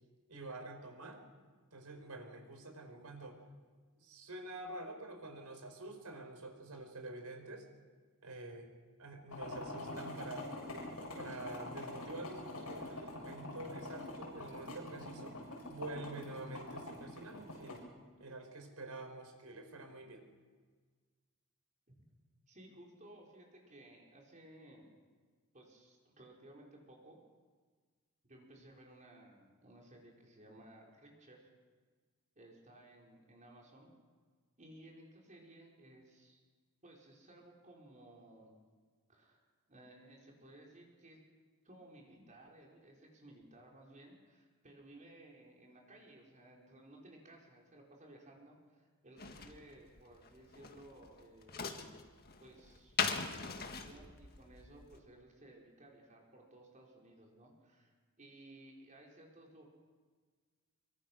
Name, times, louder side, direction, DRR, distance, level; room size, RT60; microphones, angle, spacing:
voice 1, 0.3-1.2 1.7-3.4 4.0-7.7 8.2-8.7 9.0-10.5 11.1-15.3 15.7-17.8 18.2-20.2, right 2 dB, 85° right, 5 dB, 4.4 m, -47 dB
sound 1, 9.3-17.8, left 2 dB, 75° left, 7.3 m, -45 dB
voice 2, 22.5-24.9 25.5-27.2 28.2-31.5 32.3-33.9 34.6-36.4 36.8-38.5 39.1-39.4 39.7-41.2 41.6-51.7 52.4-59.6, right 1 dB, 35° right, -1 dB, 4.9 m, -58 dB
sound 2, 49.2-55.0, left 5 dB, 45° left, 1.8 m, -40 dB
25.0 x 24.0 x 6.3 m, 1.5 s
head